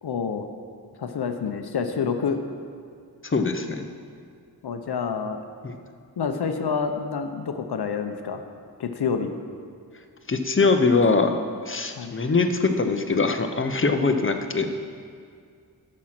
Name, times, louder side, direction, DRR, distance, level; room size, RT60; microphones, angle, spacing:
voice 1, 0.0-0.5 1.0-2.4 4.6-5.4 6.2-8.4 8.8-9.3 12.0-12.2, left 6 dB, 85° left, 6 dB, 0.7 m, -28 dB
voice 2, 3.2-3.9 5.6-5.8 10.3-11.4 11.7-14.7, left 4 dB, 30° left, 6 dB, 0.8 m, -22 dB
11.5 x 6.4 x 5.9 m, 2.2 s
wide cardioid pair, 85°, 38 cm